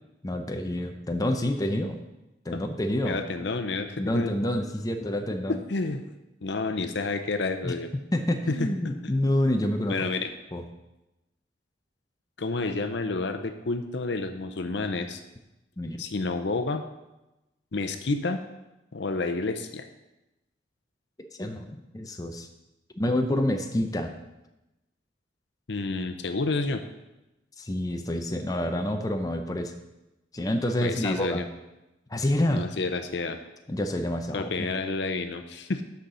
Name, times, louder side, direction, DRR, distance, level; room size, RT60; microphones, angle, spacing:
voice 1, 0.2-2.0 2.4-3.2 4.0-5.6 7.6-7.7 8.1-10.0 10.5-10.6 15.8-16.1 21.4-22.5 23.0-24.2 27.6-29.7 30.3-31.4 32.1-32.7 33.7-34.5, left 1 dB, 20° left, 4 dB, 0.6 m, -28 dB
voice 2, 3.0-4.3 5.5-6.1 6.4-7.9 8.5-8.7 9.0-9.1 9.9-10.3 12.4-15.2 16.0-16.8 17.7-18.4 18.9-19.9 25.7-26.8 30.8-31.5 32.5-33.4 34.3-35.8, left 3 dB, 65° left, 7 dB, 0.7 m, -29 dB
6.5 x 5.6 x 6.7 m, 0.97 s
head